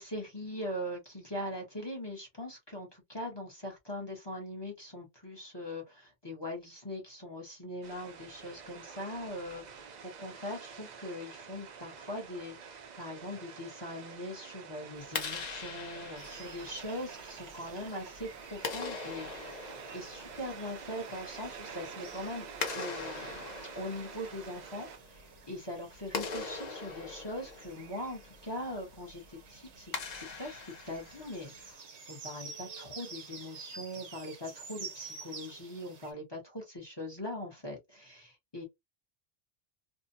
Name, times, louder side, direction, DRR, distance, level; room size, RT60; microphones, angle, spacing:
voice 1, 0.0-22.4 22.7-23.5 23.8-38.3 38.5-38.6, left 1 dB, 25° left, 0.8 m, -41 dB
sound 1, 7.8-25.0, right 6 dB, 55° right, 0.5 m, -48 dB
Clapping, 15.0-31.7, left 4 dB, 50° left, 0.7 m, -43 dB
sound 2, 16.2-36.1, right 5 dB, 75° right, 1.0 m, -51 dB
2.6 x 2.1 x 2.6 m
omnidirectional pair, 1.1 m